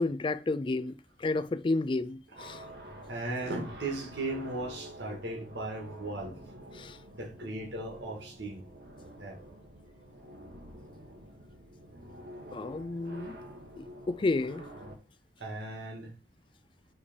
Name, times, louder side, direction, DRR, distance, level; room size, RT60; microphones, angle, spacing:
voice 1, 0.0-2.6 6.7-7.0 12.5-13.4 13.8-14.7, left 2 dB, 30° left, 0.3 m, -31 dB
sound 1, 2.4-15.0, equal, 70° right, 1.4 m, -48 dB
voice 2, 3.1-6.3 7.1-8.7 9.2-9.4 15.4-16.1, right 2 dB, 90° right, 1.8 m, -37 dB
7.0 x 3.3 x 5.1 m
head